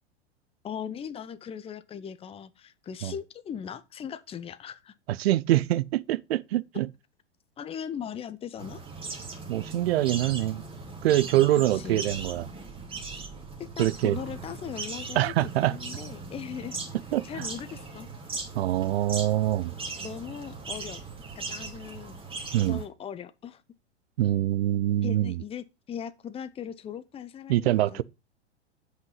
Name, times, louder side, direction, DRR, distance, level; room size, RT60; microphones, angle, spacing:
voice 1, 0.6-4.9 7.6-8.8 11.7-12.0 13.6-16.8 17.2-18.1 20.0-21.0 21.4-22.2 22.6-23.6 25.0-28.0, left 8 dB, 15° left, 0.7 m, -39 dB
voice 2, 5.1-6.9 9.5-10.6 11.0-12.5 13.8-14.2 15.2-15.8 17.1-17.5 18.5-19.7 22.5-22.8 24.2-25.4 27.5-28.0, right 14 dB, 60° right, 0.6 m, -25 dB
sound 1, 8.6-22.9, right 3 dB, 15° right, 2.4 m, -39 dB
8.0 x 5.5 x 5.5 m
hypercardioid pair, 100°, 34 cm